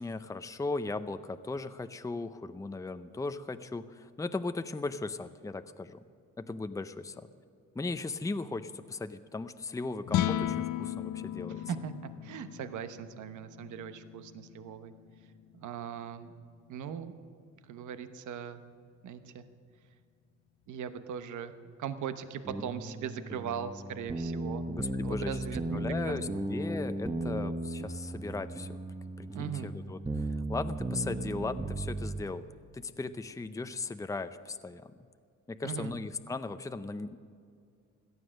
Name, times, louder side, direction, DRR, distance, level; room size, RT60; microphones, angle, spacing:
voice 1, 0.0-6.0 6.4-7.3 7.7-11.6 24.7-25.4 25.7-28.8 29.2-32.4 32.7-34.9 35.5-37.2, left 3 dB, 10° left, 10 dB, 0.6 m, -37 dB
sound 1, 10.0-16.4, left 11 dB, 75° left, 0.6 m, -36 dB
voice 2, 11.5-14.9 15.5-16.3 16.7-17.1 17.6-18.6 19.0-19.4 20.7-21.5 21.8-24.6 25.0-26.4 29.3-29.7 35.6-35.9, right 8 dB, 75° right, 10 dB, 1.0 m, -39 dB
sound 2, 22.4-32.2, right 2 dB, 15° right, 1.1 m, -36 dB
17.5 x 12.5 x 6.4 m, 2.3 s
cardioid pair, 90°, 30 cm